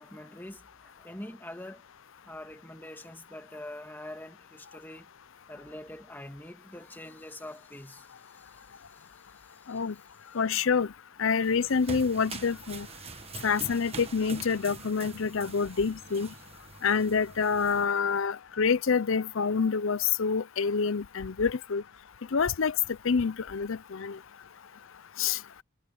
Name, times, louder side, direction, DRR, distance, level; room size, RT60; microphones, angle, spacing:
voice 1, 0.0-1.9 2.3-5.1 5.5-9.8, left 1 dB, 10° left, 2.6 m, -45 dB
voice 2, 10.3-10.9 11.2-12.9 13.4-16.3 16.8-21.8 22.3-22.8 23.0-24.2 25.2-25.4, left 5 dB, 60° left, 0.6 m, -27 dB
sound 1, 11.4-17.9, right 4 dB, 25° right, 1.4 m, -44 dB
head